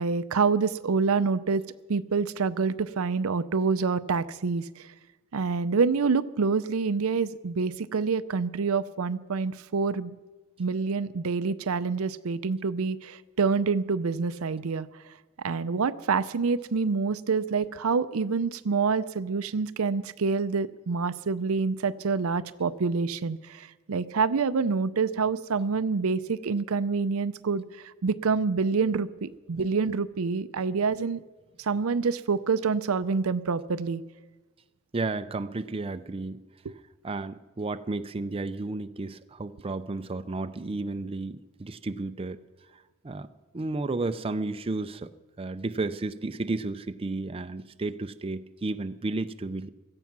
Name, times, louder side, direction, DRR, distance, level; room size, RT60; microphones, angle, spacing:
voice 1, 0.0-1.6 1.9-4.7 5.3-10.2 10.6-14.9 15.4-31.2 31.6-34.0 36.6-36.7, right 4 dB, 75° right, 13 dB, 0.6 m, -27 dB
voice 2, 34.9-36.4 37.0-42.4 43.0-43.3 43.5-45.1 45.4-49.7, right 2 dB, 25° right, 10 dB, 0.5 m, -32 dB
16.5 x 13.5 x 6.0 m, 1.2 s
head